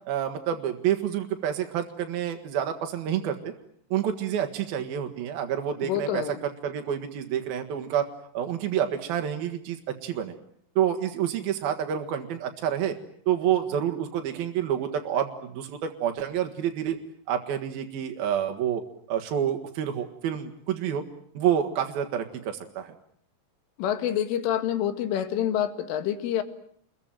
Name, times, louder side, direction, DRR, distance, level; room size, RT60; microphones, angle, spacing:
voice 1, 0.1-3.5 3.9-6.2 6.6-8.1 8.3-10.3 10.8-12.9 13.3-17.0 17.3-18.8 19.1-21.0 21.3-23.0, right 9 dB, 60° right, 5 dB, 3.0 m, -28 dB
voice 2, 5.8-6.4 23.8-26.4, left 10 dB, 80° left, 10 dB, 4.5 m, -27 dB
29.0 x 22.0 x 8.9 m, 0.64 s
omnidirectional pair, 5.6 m